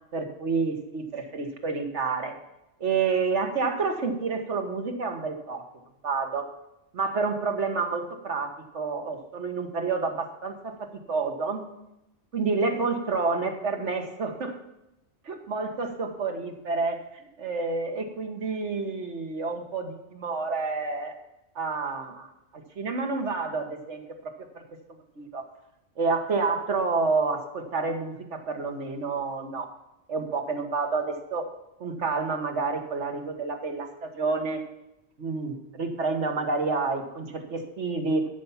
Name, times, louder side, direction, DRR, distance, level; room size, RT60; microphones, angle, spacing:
voice 1, 0.1-2.3 2.8-5.6 6.0-6.5 6.9-11.6 12.3-14.6 15.3-17.0 17.4-21.2 21.6-22.3 22.8-24.0 25.2-25.4 26.0-29.7 30.1-31.4 31.8-34.6 35.2-38.3, right 4 dB, 75° right, 5 dB, 1.8 m, -29 dB
13.5 x 5.8 x 7.3 m, 0.88 s
omnidirectional pair, 1.2 m